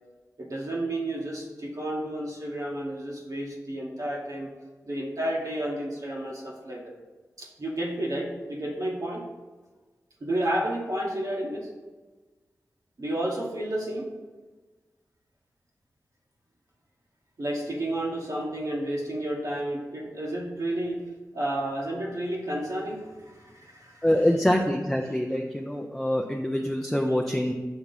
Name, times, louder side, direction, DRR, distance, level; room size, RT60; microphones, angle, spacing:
voice 1, 0.4-4.5 4.8-6.9 7.4-9.2 10.2-11.7 13.0-14.1 17.4-21.0 21.3-24.1, right 1 dB, 65° right, -3 dB, 1.2 m, -31 dB
voice 2, 24.0-27.5, left 1 dB, 5° left, 1 dB, 0.5 m, -25 dB
6.1 x 2.9 x 5.3 m, 1.3 s
cardioid pair, 45°, 6 cm